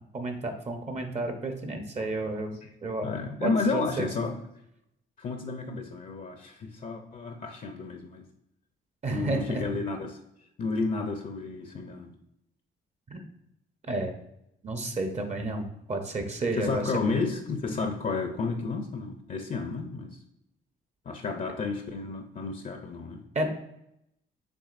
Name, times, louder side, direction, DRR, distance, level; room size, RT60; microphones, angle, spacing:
voice 1, 0.1-3.1 3.4-4.1 9.0-9.7 13.1-13.2 13.9-14.1 14.6-17.1 23.3-23.5, right 2 dB, 35° right, 5 dB, 0.7 m, -31 dB
voice 2, 3.0-4.3 5.2-8.2 9.1-10.2 10.6-12.1 16.5-20.2 21.1-23.2, left 4 dB, 40° left, 5 dB, 0.5 m, -31 dB
6.0 x 3.5 x 2.5 m, 0.81 s
cardioid pair, 90°, 20 cm